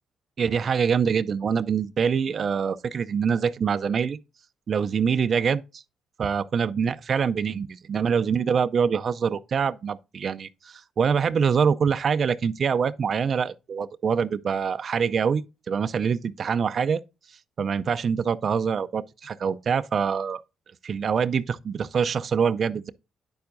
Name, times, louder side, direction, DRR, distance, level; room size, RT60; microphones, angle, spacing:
voice 1, 0.4-4.2 4.7-5.8 6.2-17.0 17.3-20.4 20.8-22.9, right 6 dB, 50° right, 0.4 m, -25 dB
9.3 x 6.9 x 2.5 m
cardioid pair, 90°, 0 cm